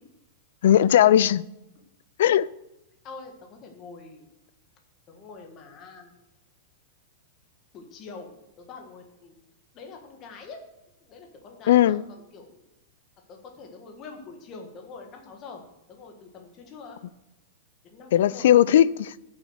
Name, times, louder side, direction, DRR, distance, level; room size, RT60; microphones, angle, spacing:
voice 1, 0.6-1.4 2.2-2.5 11.7-12.0 18.1-19.1, left 11 dB, 55° left, 0.4 m, -18 dB
voice 2, 3.0-4.3 5.1-6.2 7.7-8.3 8.6-9.3 9.7-10.6 11.0-12.6 13.3-15.6 15.9-17.0 17.8-18.5, left 4 dB, 20° left, 1.4 m, -44 dB
11.0 x 6.4 x 6.5 m
supercardioid pair, 180°, 0 cm